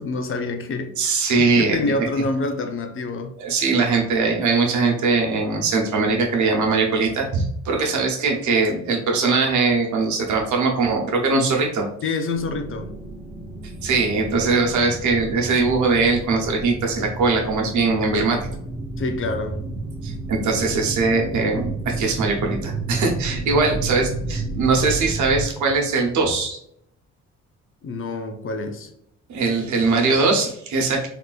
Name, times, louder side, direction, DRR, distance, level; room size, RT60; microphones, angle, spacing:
voice 1, 0.0-3.4 12.0-13.0 19.0-19.6 27.8-28.9, left 3 dB, 45° left, 0.5 m, -27 dB
voice 2, 1.0-1.8 3.4-11.9 13.8-18.4 20.0-26.6 29.3-31.1, right 4 dB, 70° right, 0.9 m, -21 dB
sound 1, 12.3-25.4, right 3 dB, 20° right, 0.6 m, -31 dB
3.5 x 2.5 x 2.3 m
cardioid pair, 90°, 30 cm